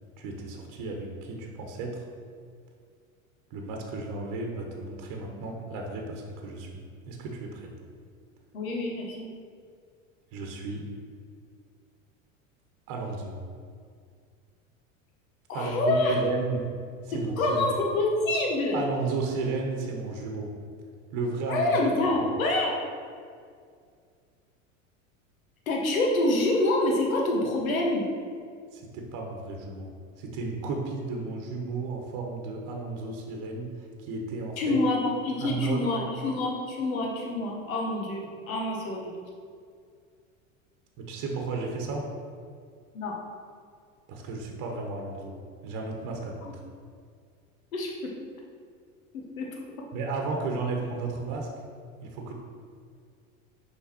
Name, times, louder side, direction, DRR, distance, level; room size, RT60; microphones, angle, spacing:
voice 1, 0.2-2.0 3.5-7.7 10.3-10.8 12.9-13.4 15.5-16.6 17.0-17.6 18.7-20.5 21.1-21.7 22.2-22.3 28.7-29.9 30.2-33.7 34.0-34.8 35.4-35.8 41.0-42.0 44.1-45.4 45.6-46.6 49.9-51.5 52.0-52.4, right 3 dB, 50° right, 1 dB, 1.1 m, -33 dB
voice 2, 8.5-9.3 15.5-16.2 17.1-18.8 21.5-22.8 25.7-28.1 34.6-39.1 42.9-43.2 46.4-46.5 47.7-48.1 49.1-49.8, left 2 dB, 85° left, 0 dB, 1.2 m, -27 dB
5.7 x 3.9 x 4.3 m, 2.2 s
hypercardioid pair, 85°, 40 cm